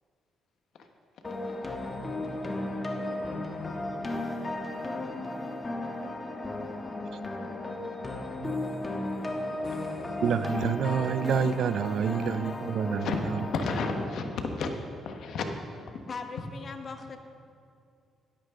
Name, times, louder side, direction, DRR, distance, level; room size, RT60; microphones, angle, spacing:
sound 1, 1.2-14.0, left 2 dB, 25° left, 1.5 m, -34 dB
voice 1, 10.2-13.1, right 7 dB, 65° right, 13 dB, 0.4 m, -28 dB
voice 2, 13.0-14.7 15.0-15.9, left 4 dB, 70° left, 5 dB, 1.2 m, -33 dB
voice 3, 16.1-17.2, left 4 dB, 45° left, 6 dB, 1.1 m, -39 dB
12.5 x 11.5 x 3.7 m, 2.3 s
cardioid pair, 90°, 0 cm